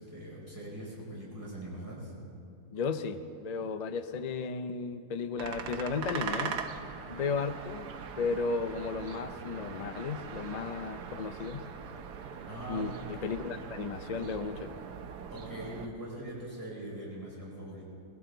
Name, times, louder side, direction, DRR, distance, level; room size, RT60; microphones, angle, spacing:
voice 1, 0.0-2.1 12.5-13.0 15.3-17.8, right 1 dB, 10° right, -7 dB, 5.2 m, -42 dB
voice 2, 2.7-6.6 7.1-7.9 8.2-11.6 12.7-14.8, left 5 dB, 80° left, 9 dB, 0.3 m, -34 dB
sound 1, 5.4-15.9, right 6 dB, 85° right, 1.4 m, -41 dB
20.5 x 16.5 x 3.9 m, 2.6 s
omnidirectional pair, 1.7 m